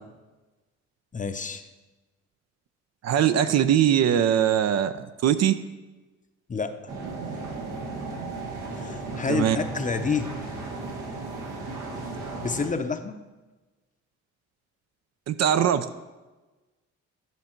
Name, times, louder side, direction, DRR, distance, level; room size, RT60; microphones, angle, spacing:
voice 1, 1.1-1.6 6.5-6.9 8.8-10.3 12.4-13.2, left 5 dB, 25° left, 8 dB, 0.7 m, -29 dB
voice 2, 3.0-5.6 9.3-9.6 15.3-16.0, right 9 dB, 60° right, 11 dB, 0.6 m, -21 dB
sound 1, 6.9-12.7, right 3 dB, 85° right, 1.8 m, -35 dB
11.0 x 5.4 x 4.5 m, 1.2 s
cardioid pair, 90°, 30 cm